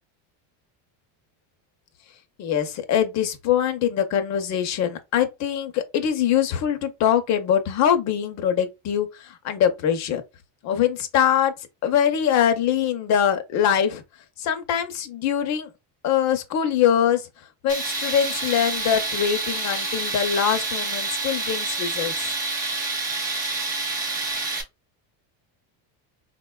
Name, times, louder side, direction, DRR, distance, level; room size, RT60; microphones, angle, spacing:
voice 1, 2.4-10.2 10.6-14.0 14.4-15.7 16.0-17.3 17.6-22.3, left 9 dB, 40° left, 0.5 m, -23 dB
Tools, 17.7-24.6, right 3 dB, 20° right, 0.4 m, -28 dB
3.8 x 2.2 x 2.2 m
cardioid pair, 155°, 48 cm